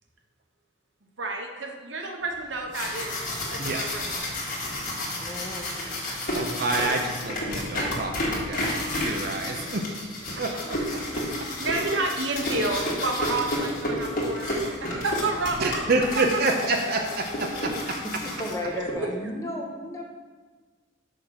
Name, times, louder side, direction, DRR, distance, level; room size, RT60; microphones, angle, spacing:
voice 1, 1.2-4.3 10.3-10.4 11.6-14.5 14.8-15.7 16.3-16.4 18.7-19.1, right 2 dB, 65° right, 2 dB, 1.0 m, -30 dB
sound 1, 2.5-18.9, left 1 dB, 40° left, 1.8 m, -31 dB
voice 2, 5.2-5.6 18.0-20.0, left 1 dB, 15° left, 0 dB, 0.9 m, -33 dB
voice 3, 6.3-8.7 9.0-9.9 10.4-10.8 15.6-18.0, right 2 dB, 45° right, 2 dB, 0.7 m, -27 dB
6.5 x 5.1 x 5.9 m, 1.4 s
head